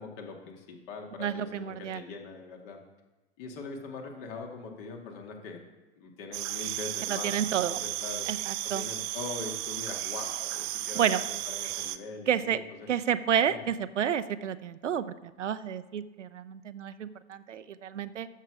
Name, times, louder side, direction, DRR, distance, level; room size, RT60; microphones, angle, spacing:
voice 1, 0.0-2.8 3.4-5.6 6.0-8.3 8.7-12.9 13.5-13.6, left 4 dB, 50° left, 2 dB, 2.2 m, -42 dB
voice 2, 1.2-2.0 7.1-7.8 8.3-8.9 10.9-11.2 12.3-12.6 12.9-18.3, right 9 dB, 80° right, 12 dB, 0.7 m, -30 dB
sound 1, 6.3-12.0, right 15 dB, 40° right, 0.7 m, -34 dB
13.5 x 6.6 x 4.9 m, 1.1 s
figure-of-eight pair, 90°, 36 cm